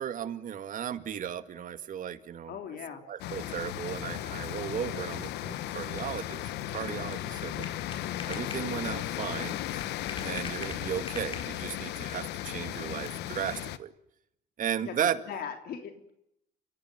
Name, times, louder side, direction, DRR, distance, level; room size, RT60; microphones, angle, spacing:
voice 1, 0.0-2.6 3.1-7.7 8.3-9.6 10.2-13.9 14.6-15.2, right 9 dB, 50° right, 10 dB, 2.1 m, -35 dB
voice 2, 2.5-3.0 14.8-14.9 15.3-16.1, left 8 dB, 65° left, 5 dB, 3.6 m, -39 dB
sound 1, 3.2-13.8, left 13 dB, 85° left, 1.3 m, -36 dB
sound 2, 7.6-11.8, left 3 dB, 30° left, 4.9 m, -45 dB
29.5 x 16.0 x 9.4 m, 0.80 s
cardioid pair, 110°, 17 cm